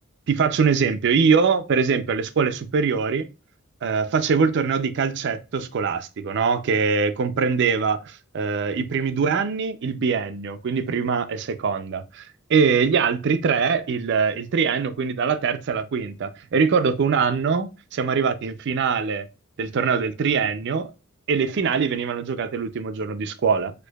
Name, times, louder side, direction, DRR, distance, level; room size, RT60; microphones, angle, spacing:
voice 1, 0.3-3.3 3.8-19.3 19.6-20.9 21.3-23.7, right 5 dB, 55° right, 0.4 m, -23 dB
4.4 x 2.6 x 2.2 m
head